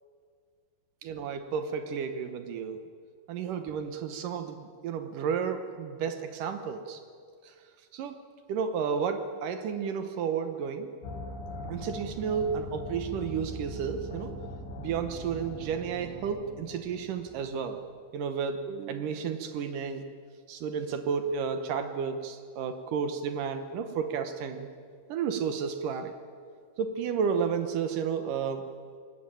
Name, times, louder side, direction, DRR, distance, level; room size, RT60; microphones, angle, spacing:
voice 1, 1.0-2.8 3.3-7.0 7.4-7.5 7.9-8.2 8.5-10.9 11.7-14.4 14.8-17.8 18.1-20.0 20.5-24.7 25.1-26.1 26.8-28.7, right 6 dB, 75° right, 8 dB, 2.0 m, -32 dB
sound 1, 11.0-17.8, left 1 dB, 70° left, 4.1 m, -41 dB
23.5 x 18.5 x 9.1 m, 2.1 s
omnidirectional pair, 5.4 m